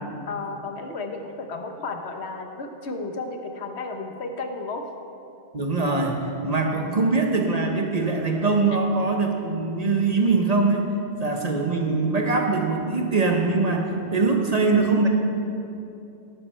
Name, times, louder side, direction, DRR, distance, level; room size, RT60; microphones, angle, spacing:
voice 1, 0.1-4.8, left 3 dB, 70° left, 5 dB, 1.2 m, -33 dB
voice 2, 5.5-10.8 11.2-15.1, right 3 dB, 35° right, 2 dB, 1.1 m, -22 dB
12.0 x 11.5 x 4.4 m, 2.7 s
omnidirectional pair, 1.1 m